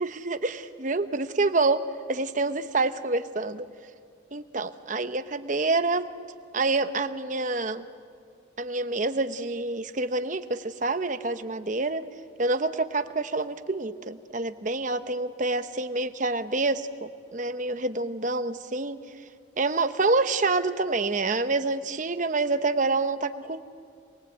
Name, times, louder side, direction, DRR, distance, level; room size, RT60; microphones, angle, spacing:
voice 1, 0.0-3.6 4.3-6.1 6.5-7.8 8.6-12.1 12.4-19.0 19.6-23.6, right 3 dB, 40° right, 10 dB, 0.9 m, -27 dB
27.5 x 21.5 x 8.0 m, 2.2 s
head